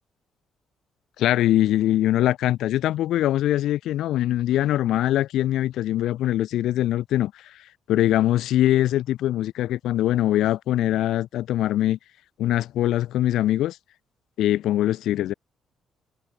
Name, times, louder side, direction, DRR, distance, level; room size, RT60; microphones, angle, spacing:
voice 1, 1.2-7.3 7.9-12.0 12.4-13.8 14.4-15.3, left 13 dB, 80° left, 1.8 m, -22 dB
cardioid pair, 90°, 0 cm